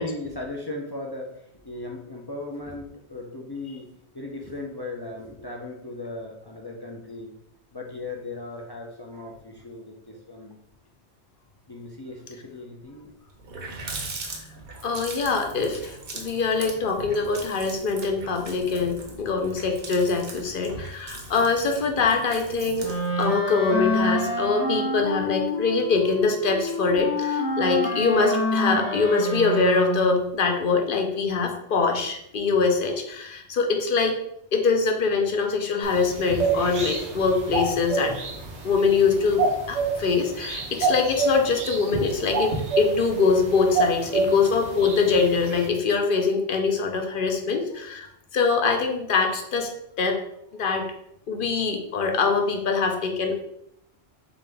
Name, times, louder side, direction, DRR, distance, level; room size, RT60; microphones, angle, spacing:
voice 1, 0.0-7.3 7.7-10.5 11.7-13.1 13.7-14.8 44.2-44.3 52.4-52.5, left 2 dB, 35° left, -1 dB, 0.4 m, -38 dB
Water tap faucet, 12.9-13.0 13.3-23.4, right 3 dB, 60° right, 0.9 m, -40 dB
voice 2, 14.8-34.2 34.5-38.2 38.6-48.1 48.3-49.7 50.0-50.2 50.5-50.9 51.3-53.4, left 4 dB, 55° left, 4 dB, 0.8 m, -23 dB
Wind instrument woodwind instrument, 22.8-30.2, left 1 dB, 90° left, 1.7 m, -27 dB
sound 1, 35.8-45.7, right 3 dB, 85° right, 1.2 m, -28 dB
3.8 x 3.7 x 3.4 m, 0.75 s
omnidirectional pair, 1.1 m